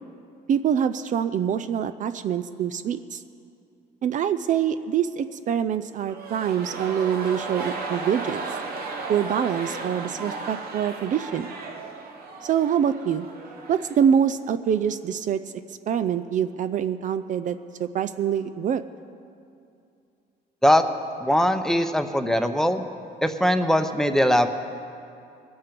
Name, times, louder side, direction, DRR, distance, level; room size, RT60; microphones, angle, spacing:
voice 1, 0.5-3.2 4.0-8.4 9.1-11.5 12.4-13.3 13.7-15.4 15.7-18.8, right 8 dB, 50° right, 12 dB, 0.4 m, -25 dB
sound 1, 6.0-14.1 14.4-14.5, right 3 dB, 65° right, 1.3 m, -35 dB
voice 2, 21.2-22.8 23.2-24.5, equal, 5° left, 7 dB, 0.7 m, -21 dB
21.5 x 8.8 x 5.2 m, 2.5 s
cardioid pair, 110°, 17 cm